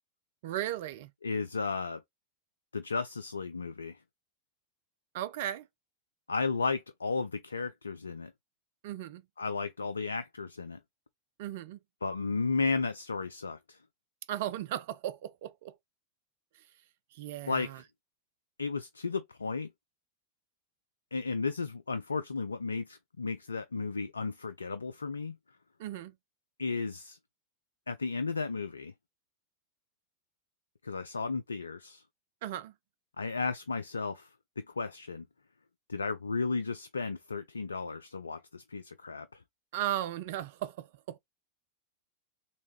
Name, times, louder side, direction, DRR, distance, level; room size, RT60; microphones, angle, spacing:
voice 1, 0.4-1.1 5.1-5.7 8.8-9.2 11.4-11.8 14.3-15.8 17.1-17.8 25.8-26.1 32.4-32.7 39.7-41.2, right 12 dB, 50° right, 0.5 m, -36 dB
voice 2, 1.2-2.0 2.7-4.0 6.3-8.3 9.4-10.8 12.0-13.8 17.5-17.7 18.6-19.7 21.1-25.4 26.6-27.2 27.9-28.9 30.8-32.0 33.2-34.3 34.6-35.3 35.9-39.4, left 4 dB, 75° left, 0.3 m, -34 dB
4.1 x 3.4 x 3.0 m
figure-of-eight pair, 90°, 0 cm